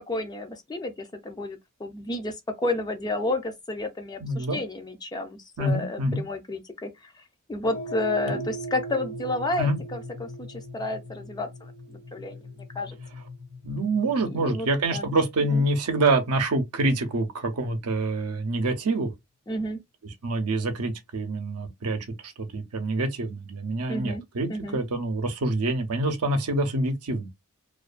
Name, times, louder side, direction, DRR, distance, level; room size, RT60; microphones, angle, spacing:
voice 1, 0.1-7.1 7.5-11.7 12.1-12.4 12.8-13.0 14.4-15.1 15.5-15.6 19.5-19.8 23.9-24.2 24.5-24.8, left 2 dB, 20° left, 0.4 m, -31 dB
voice 2, 4.2-4.6 5.6-6.2 8.3-8.4 9.6-9.8 13.6-19.1 20.2-27.3, right 2 dB, 80° right, 0.6 m, -26 dB
sound 1, 7.6-16.1, right 2 dB, 70° left, 0.7 m, -39 dB
2.3 x 2.2 x 2.4 m
head